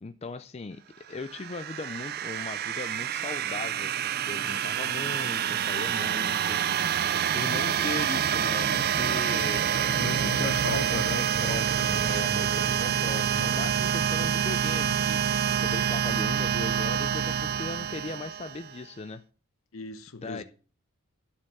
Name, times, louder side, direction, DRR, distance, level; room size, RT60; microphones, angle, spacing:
voice 1, 0.0-7.0 7.3-19.2 20.2-20.4, left 3 dB, 30° left, 0.4 m, -38 dB
sound 1, 1.2-18.8, right 8 dB, 45° right, 0.4 m, -27 dB
voice 2, 10.0-11.2 19.7-20.4, left 4 dB, 65° left, 0.9 m, -36 dB
12.0 x 5.3 x 5.9 m
head